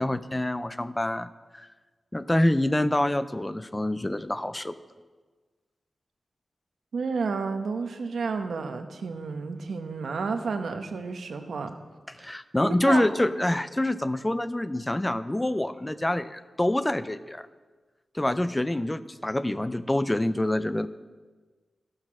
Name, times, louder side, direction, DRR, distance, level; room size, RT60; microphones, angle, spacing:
voice 1, 0.0-1.7 2.1-4.8 12.2-17.5 18.1-20.9, left 1 dB, 10° left, 13 dB, 0.3 m, -26 dB
voice 2, 6.9-11.7 12.2-12.3 12.6-13.0, right 4 dB, 90° right, 7 dB, 0.9 m, -31 dB
13.0 x 6.5 x 6.0 m, 1.4 s
wide cardioid pair, 165°, 0 cm